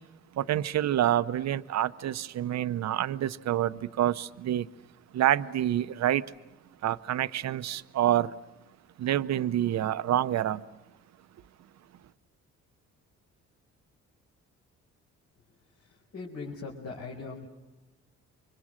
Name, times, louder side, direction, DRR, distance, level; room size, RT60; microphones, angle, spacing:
voice 1, 0.3-4.7 5.1-6.2 6.8-8.3 9.0-10.6, right 12 dB, 60° right, 0.8 m, -27 dB
voice 2, 16.1-17.5, left 4 dB, 60° left, 5.0 m, -39 dB
30.0 x 24.5 x 6.5 m
cardioid pair, 90°, 30 cm